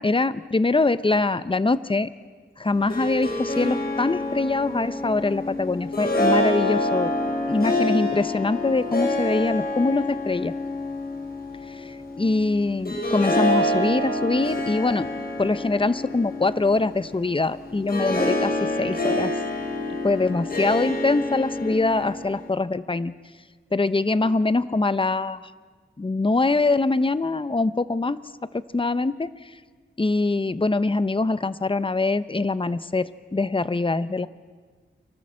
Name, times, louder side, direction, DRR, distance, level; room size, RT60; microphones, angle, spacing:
voice 1, 0.0-2.1 2.6-7.1 7.5-10.5 11.7-15.1 15.4-18.5 18.8-19.3 20.0-23.1 23.7-25.4 26.0-28.2 28.5-29.3 30.0-34.3, left 3 dB, 25° left, 14 dB, 0.8 m, -23 dB
Harp, 2.7-22.5, left 1 dB, 45° left, 6.1 m, -27 dB
30.0 x 24.5 x 7.6 m, 1.5 s
wide cardioid pair, 85°, 21 cm